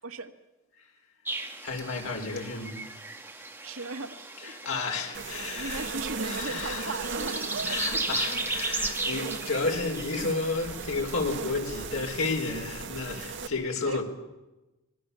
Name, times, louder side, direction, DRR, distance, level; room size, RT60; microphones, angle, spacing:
sound 1, 1.2-11.4, right 2 dB, 10° right, 2.0 m, -36 dB
voice 1, 1.6-2.8 4.4-7.4 7.6-14.0, left 3 dB, 85° left, 2 dB, 4.4 m, -32 dB
voice 2, 3.6-4.8 5.5-8.0 13.8-14.0, right 3 dB, 85° right, 5 dB, 1.8 m, -38 dB
sound 2, 5.1-13.5, right 5 dB, 60° right, 1.7 m, -37 dB
26.5 x 21.0 x 7.0 m, 1.0 s
head